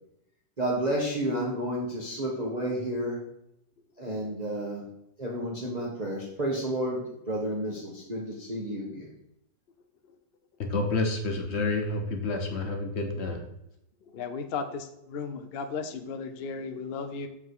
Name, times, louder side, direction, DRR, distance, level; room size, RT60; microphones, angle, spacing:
voice 1, 0.6-3.2 4.0-4.8 5.2-9.1, right 1 dB, 25° right, -4 dB, 1.2 m, -31 dB
voice 2, 10.7-13.4, left 3 dB, 40° left, 3 dB, 1.2 m, -29 dB
voice 3, 14.0-17.3, left 5 dB, 60° left, 7 dB, 0.6 m, -35 dB
6.8 x 5.6 x 4.7 m, 0.81 s
omnidirectional pair, 1.9 m